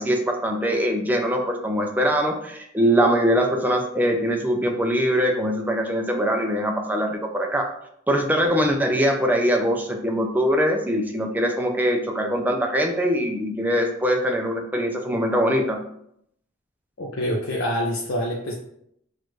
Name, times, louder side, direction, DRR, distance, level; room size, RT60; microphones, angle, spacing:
voice 1, 0.0-7.7 8.1-15.8, equal, 10° right, 2 dB, 0.5 m, -22 dB
voice 2, 17.0-18.5, equal, 75° left, -1 dB, 0.6 m, -26 dB
6.3 x 2.5 x 3.1 m, 0.74 s
head